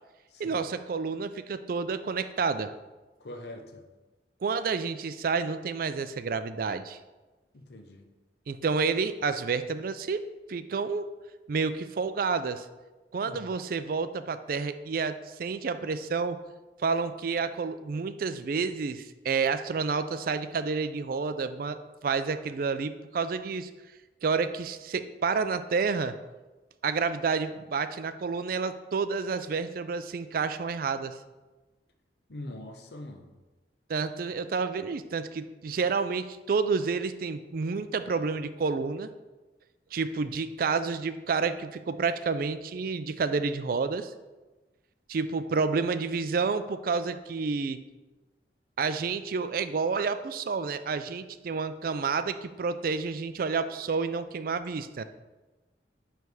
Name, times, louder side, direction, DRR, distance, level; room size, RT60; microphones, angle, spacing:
voice 1, 0.4-2.7 4.4-7.0 8.5-10.2 10.5-11.0 11.5-12.7 13.1-16.4 16.8-23.7 24.2-26.1 26.8-31.1 33.9-39.1 39.9-44.1 45.1-47.8 48.8-55.0, right 5 dB, 55° right, 11 dB, 0.4 m, -29 dB
voice 2, 3.2-3.8 7.5-8.1 13.3-13.5 32.3-33.3, left 1 dB, 65° left, 5 dB, 0.8 m, -42 dB
9.2 x 3.4 x 4.8 m, 1.2 s
head